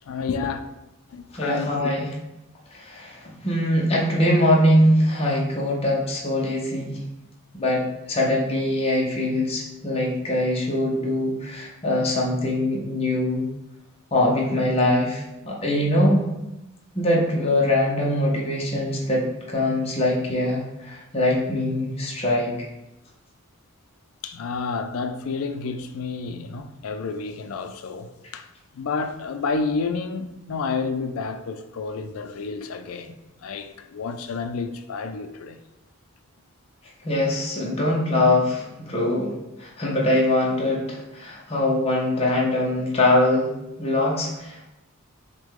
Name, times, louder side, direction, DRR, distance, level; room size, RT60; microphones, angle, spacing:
voice 1, 0.1-0.6 1.1-1.9 24.2-28.5 28.7-33.1 33.4-35.6, left 4 dB, 80° left, 0.4 m, -30 dB
voice 2, 1.3-2.1 2.8-7.0 7.6-13.5 14.1-16.3 17.0-22.6 37.0-39.3 39.6-43.5 43.8-44.7, left 1 dB, 30° left, 0.7 m, -22 dB
6.0 x 2.2 x 3.7 m
head